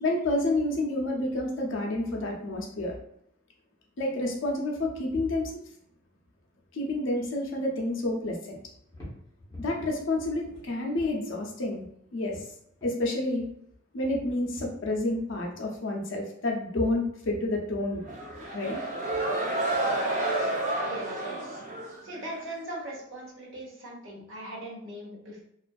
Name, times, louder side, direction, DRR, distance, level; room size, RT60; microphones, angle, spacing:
voice 1, 0.0-2.9 4.0-5.5 6.7-8.6 9.6-11.8 12.1-12.4 12.8-13.4 13.9-18.0 18.5-18.8, left 2 dB, 60° left, 0 dB, 0.5 m, -29 dB
sound 1, 5.6-7.0 7.3-8.1 8.5-11.7 12.0-13.2 14.1-15.1 15.5-15.6, left 1 dB, 15° left, 0.8 m, -48 dB
sound 2, 18.0-22.5, right 2 dB, 40° right, 0.5 m, -30 dB
voice 2, 20.8-21.6 22.0-25.4, right 1 dB, 60° right, -4 dB, 0.9 m, -40 dB
2.5 x 2.4 x 2.3 m, 0.72 s
head